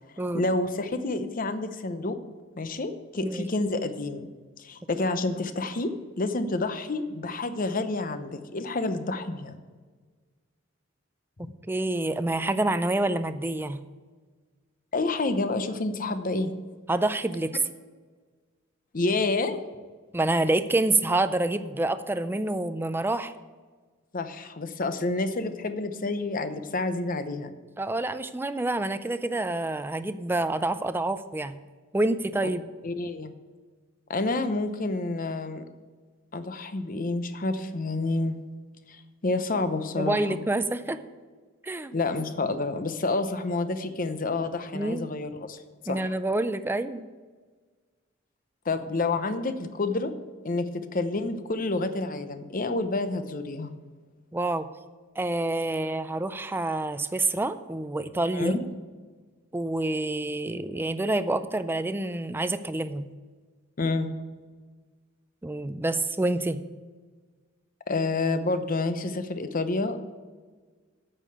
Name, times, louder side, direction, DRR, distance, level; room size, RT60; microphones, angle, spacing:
voice 1, 0.3-2.2 2.6-4.3 4.6-5.9 6.2-9.6 11.4-11.5 14.9-16.5 18.9-19.6 24.1-27.5 32.4-32.5 32.8-33.3 34.1-35.6 36.3-38.4 38.9-40.4 41.9-45.6 45.8-46.1 48.7-50.1 50.4-53.7 58.3-58.6 63.8-64.1 67.9-70.0, left 2 dB, 45° left, 10 dB, 0.8 m, -29 dB
voice 2, 11.4-13.8 16.9-17.6 20.1-23.3 27.8-31.6 31.9-32.6 40.0-41.0 41.6-41.9 44.7-45.1 45.9-47.0 54.3-54.7 55.2-58.6 59.5-63.1 65.4-66.6, right 2 dB, 10° right, 11 dB, 0.4 m, -27 dB
8.8 x 6.7 x 8.5 m, 1.4 s
head